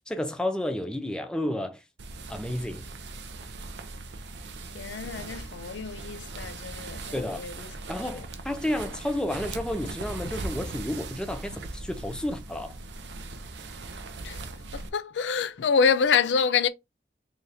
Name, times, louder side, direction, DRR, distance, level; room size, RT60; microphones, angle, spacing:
voice 1, 0.1-1.8 2.3-2.8 7.1-7.4 7.9-12.8, left 1 dB, 5° left, 0.6 m, -31 dB
sound 1, 2.0-14.9, right 2 dB, 80° right, 0.6 m, -39 dB
voice 2, 4.7-7.7 8.1-8.2 14.2-14.4 14.7-16.7, left 6 dB, 90° left, 0.4 m, -27 dB
3.8 x 2.8 x 3.3 m
head